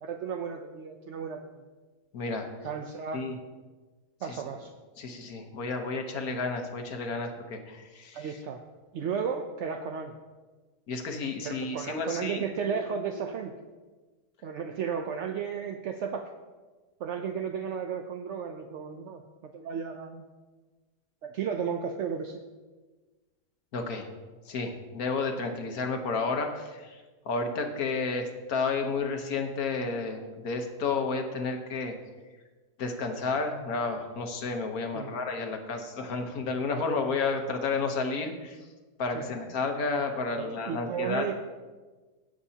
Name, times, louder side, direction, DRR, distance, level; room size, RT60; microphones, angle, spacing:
voice 1, 0.0-1.6 2.6-3.3 4.2-4.7 8.1-8.6 8.9-10.1 11.4-13.6 14.4-16.3 17.0-19.2 19.5-20.3 21.2-22.4 34.9-35.2 39.1-39.3 40.3-41.3, right 7 dB, 65° right, 4 dB, 0.7 m, -34 dB
voice 2, 2.1-2.5 3.1-3.3 4.3-4.4 5.0-8.3 10.9-12.8 13.1-13.2 23.7-24.1 24.5-31.9 32.8-38.6 39.0-41.3, left 4 dB, 65° left, 4 dB, 1.5 m, -31 dB
16.5 x 7.6 x 2.8 m, 1.3 s
omnidirectional pair, 1.7 m